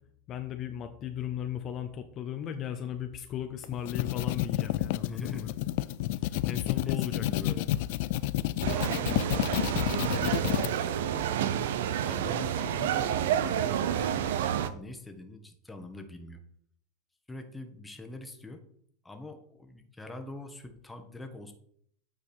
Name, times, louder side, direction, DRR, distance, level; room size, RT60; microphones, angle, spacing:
voice 1, 0.3-5.5 6.5-7.3, left 9 dB, 40° left, 7 dB, 0.7 m, -36 dB
sound 1, 3.6-10.7, left 16 dB, 65° left, 0.3 m, -30 dB
voice 2, 5.0-5.5 5.8-6.3 6.8-7.7 8.7-14.2 14.7-16.4 17.3-18.6 19.0-21.5, left 2 dB, 10° left, 6 dB, 1.2 m, -44 dB
sound 2, 8.6-14.7, right 9 dB, 75° right, 0.6 m, -29 dB
8.4 x 4.6 x 4.4 m, 0.66 s
hypercardioid pair, 105°, 0 cm